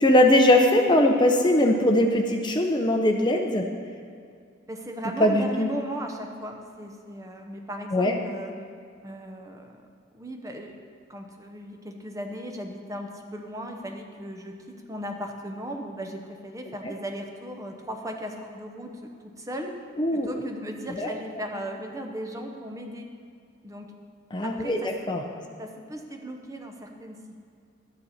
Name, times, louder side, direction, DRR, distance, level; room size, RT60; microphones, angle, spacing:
voice 1, 0.0-3.7 5.2-5.7 7.9-8.2 20.0-20.3 21.0-21.1 24.3-25.2, left 1 dB, 25° left, 3 dB, 0.6 m, -21 dB
voice 2, 4.7-8.5 9.0-9.8 10.1-10.8 11.1-19.8 20.1-23.1 23.6-23.9 24.4-24.9 25.6-27.4, right 1 dB, 15° right, 3 dB, 0.7 m, -37 dB
12.0 x 9.6 x 4.2 m, 2.3 s
head